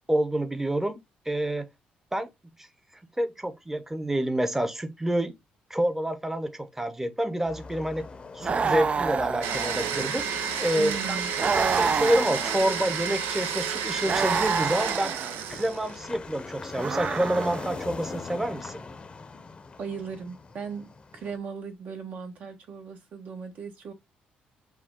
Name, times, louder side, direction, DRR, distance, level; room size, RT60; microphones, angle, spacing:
voice 1, 0.1-1.0 1.3-1.7 2.1-2.3 3.2-5.3 5.7-8.1 8.3-10.2 10.6-11.2 11.5-15.1 15.5-18.8, right 1 dB, 10° right, 0.8 m, -28 dB
sound 1, 7.4-21.4, left 4 dB, 30° left, 0.7 m, -43 dB
sound 2, 8.4-10.2 11.4-12.9 14.0-15.4 16.8-17.9, right 5 dB, 35° right, 0.4 m, -28 dB
Domestic sounds home sounds, 9.4-16.1, right 7 dB, 90° right, 0.5 m, -31 dB
voice 2, 10.8-11.3 19.8-23.9, right 6 dB, 60° right, 1.3 m, -37 dB
4.7 x 2.3 x 3.7 m
cardioid pair, 85°, 3 cm